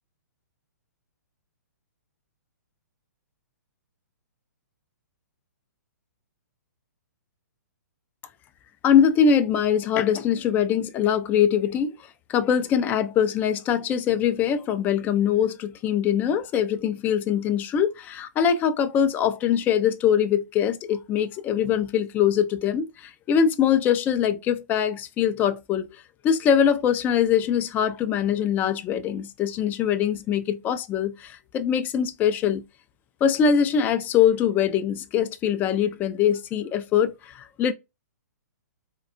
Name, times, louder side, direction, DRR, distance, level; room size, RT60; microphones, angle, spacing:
voice 1, 8.8-12.0 12.3-25.9 26.2-32.6 33.2-37.7, left 8 dB, 20° left, 0.3 m, -23 dB
4.0 x 2.1 x 2.4 m
figure-of-eight pair, 120°, 10 cm